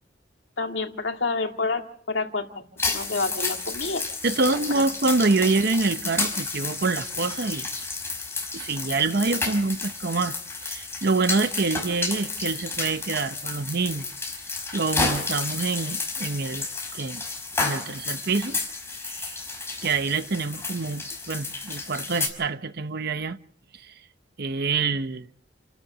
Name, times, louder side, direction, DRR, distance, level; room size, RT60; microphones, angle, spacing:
voice 1, 0.6-4.0 4.8-4.9, left 3 dB, 75° left, 2.2 m, -29 dB
sound 1, 2.8-22.3, left 3 dB, 15° left, 5.3 m, -31 dB
voice 2, 4.2-7.7 8.5-14.1 14.7-16.7 16.9-17.2 17.6-18.6 19.0-19.4 19.8-23.4 23.7-23.9 24.4-25.3, right 3 dB, 60° right, 0.9 m, -26 dB
29.5 x 13.0 x 7.4 m
head